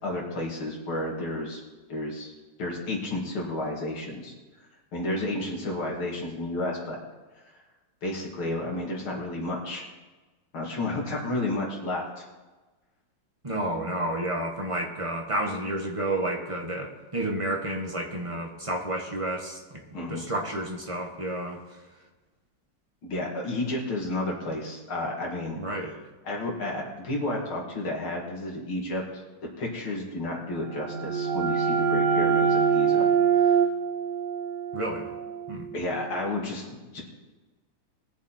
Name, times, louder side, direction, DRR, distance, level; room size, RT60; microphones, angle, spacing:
voice 1, 0.0-1.6 1.9-2.3 2.6-4.3 4.9-7.0 8.0-9.8 10.5-12.3 19.9-20.2 23.0-25.6 26.2-33.1 33.3-33.6 35.7-37.0, left 2 dB, 80° left, -2 dB, 3.4 m, -31 dB
voice 2, 13.4-19.8 20.1-21.6 25.6-25.9 34.7-35.1 35.5-35.7, right 1 dB, 20° right, 1 dB, 1.3 m, -30 dB
sound 1, 30.6-36.1, right 7 dB, 60° right, 1.7 m, -25 dB
21.0 x 7.2 x 4.4 m, 1.2 s
omnidirectional pair, 2.3 m